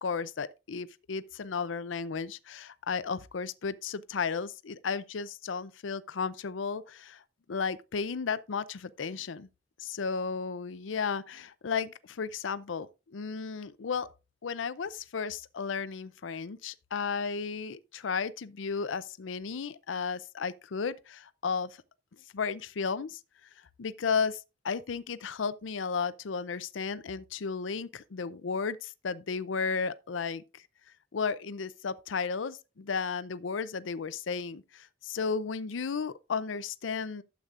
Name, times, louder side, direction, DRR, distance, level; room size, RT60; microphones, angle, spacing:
voice 1, 0.0-7.2 7.5-9.5 9.8-14.1 14.4-21.8 22.3-23.2 23.8-30.6 31.1-37.2, left 5 dB, 85° left, 0.5 m, -34 dB
12.5 x 8.1 x 2.5 m
head